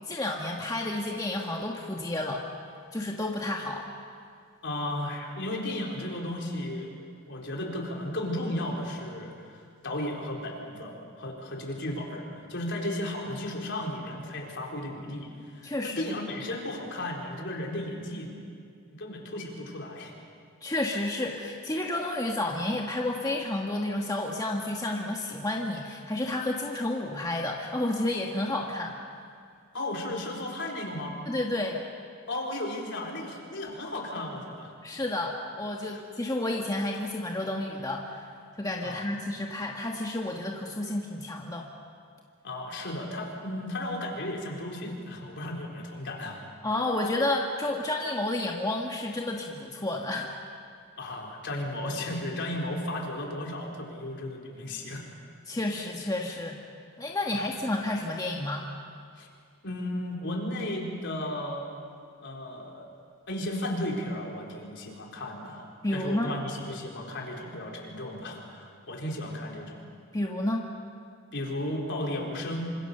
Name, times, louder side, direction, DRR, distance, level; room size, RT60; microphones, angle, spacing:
voice 1, 0.0-2.5 2.9-3.9 15.6-16.1 20.6-29.0 31.2-31.8 34.8-38.3 38.6-41.7 46.6-50.3 55.5-56.6 57.0-58.7 65.8-66.3 70.1-70.6, left 1 dB, 15° left, 0 dB, 1.6 m, -31 dB
voice 2, 4.6-6.9 7.3-18.3 18.9-20.1 29.7-31.2 32.3-34.7 35.9-36.0 38.8-39.1 42.4-46.4 51.0-55.1 57.3-57.4 59.2-59.3 59.6-61.7 62.2-62.9 63.3-69.9 71.3-72.8, left 1 dB, 55° left, 0 dB, 4.3 m, -34 dB
27.0 x 26.5 x 6.9 m, 2.3 s
head